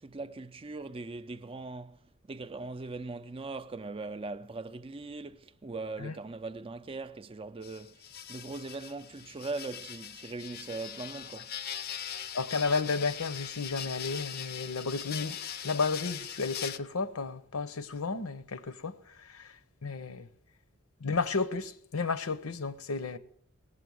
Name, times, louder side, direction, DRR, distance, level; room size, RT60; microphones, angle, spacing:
voice 1, 0.0-11.6, right 3 dB, 25° right, 0.4 m, -40 dB
sound 1, 7.6-16.8, left 9 dB, 45° left, 0.5 m, -41 dB
voice 2, 12.3-15.4 15.6-19.5 19.8-20.3 21.0-23.2, left 4 dB, 80° left, 0.8 m, -32 dB
18.5 x 7.6 x 6.3 m
head